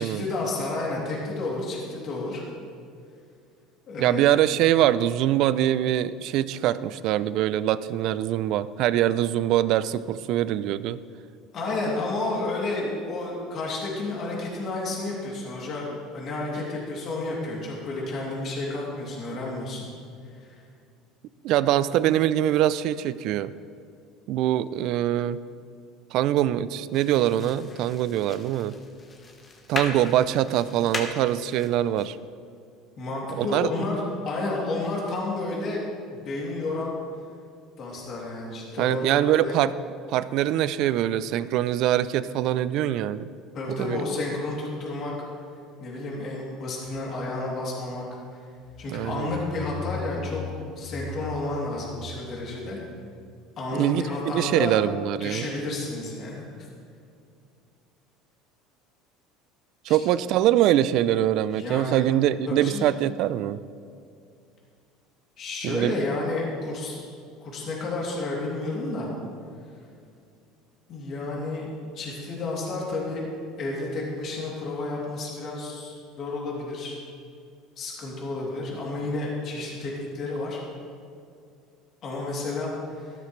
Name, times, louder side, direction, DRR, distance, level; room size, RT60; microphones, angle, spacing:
voice 1, 0.0-2.4 3.9-4.4 11.5-15.8 16.1-19.9 20.3-20.6 33.0-37.0 37.8-39.6 43.5-45.1 45.8-48.0 48.8-50.4 50.8-52.8 53.6-54.8 55.2-56.5 59.9-60.0 61.6-62.0 62.5-62.8 65.4-67.0 67.4-69.1 70.9-73.3 73.6-77.0 77.8-80.6 82.0-83.1, left 2 dB, 40° left, -4 dB, 2.9 m, -31 dB
voice 2, 4.0-11.0 21.4-23.5 24.3-25.4 26.1-28.8 29.7-32.2 33.4-33.7 38.8-39.7 40.1-43.3 43.7-44.0 48.9-49.3 53.7-55.5 59.9-63.6 65.6-65.9, right 12 dB, 55° right, 16 dB, 0.4 m, -23 dB
sound 1, 26.9-32.1, left 3 dB, 25° left, 1.1 m, -38 dB
sound 2, 48.7-53.2, left 3 dB, 55° left, 1.4 m, -38 dB
13.5 x 12.5 x 3.2 m, 2.4 s
cardioid pair, 145°, 0 cm